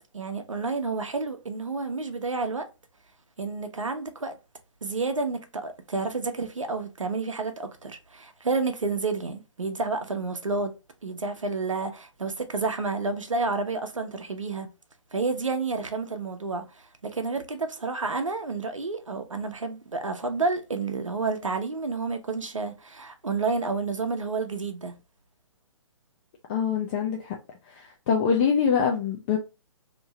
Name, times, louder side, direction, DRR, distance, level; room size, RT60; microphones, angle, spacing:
voice 1, 0.1-2.7 3.4-4.4 4.8-10.7 11.0-14.7 15.1-24.9, right 4 dB, 80° right, 0.8 m, -30 dB
voice 2, 26.5-27.4 27.7-29.4, left 6 dB, 20° left, 0.3 m, -24 dB
3.0 x 2.6 x 3.0 m
figure-of-eight pair, 130°, 16 cm